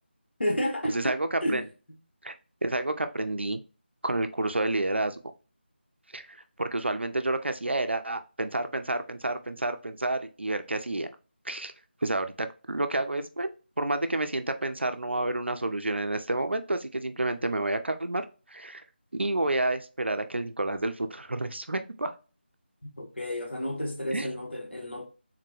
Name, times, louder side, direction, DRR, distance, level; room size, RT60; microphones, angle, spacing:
voice 1, 0.4-1.1 1.4-1.6 23.0-25.0, equal, 75° left, 1.2 m, -31 dB
voice 2, 0.9-1.6 2.2-2.3 2.6-3.6 4.0-5.2 6.1-11.1 11.4-11.7 12.0-13.5 13.8-18.8 19.1-22.1 24.1-24.3, right 2 dB, 80° right, 0.5 m, -29 dB
3.8 x 2.2 x 3.0 m
figure-of-eight pair, 165°, 6 cm